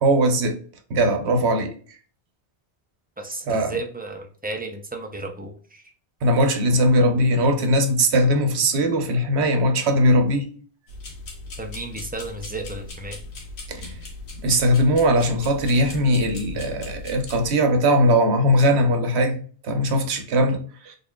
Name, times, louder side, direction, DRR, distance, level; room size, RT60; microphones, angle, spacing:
voice 1, 0.0-0.6 0.9-1.8 3.5-3.7 6.2-10.5 13.7-13.9 14.4-20.9, equal, 85° right, 1.0 m, -20 dB
voice 2, 3.2-5.8 11.6-13.2, right 2 dB, 15° right, 0.4 m, -33 dB
sound 1, 10.9-17.5, left 3 dB, 85° left, 1.3 m, -38 dB
4.2 x 3.4 x 2.2 m
omnidirectional pair, 1.1 m